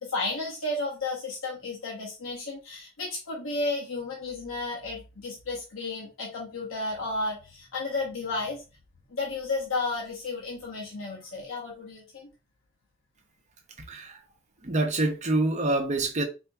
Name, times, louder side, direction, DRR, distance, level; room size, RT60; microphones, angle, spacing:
voice 1, 0.0-8.6 9.1-12.3, left 3 dB, 75° left, 1.0 m, -33 dB
voice 2, 13.9-14.2 14.6-16.2, right 2 dB, 35° right, 0.8 m, -26 dB
4.4 x 2.8 x 2.3 m
head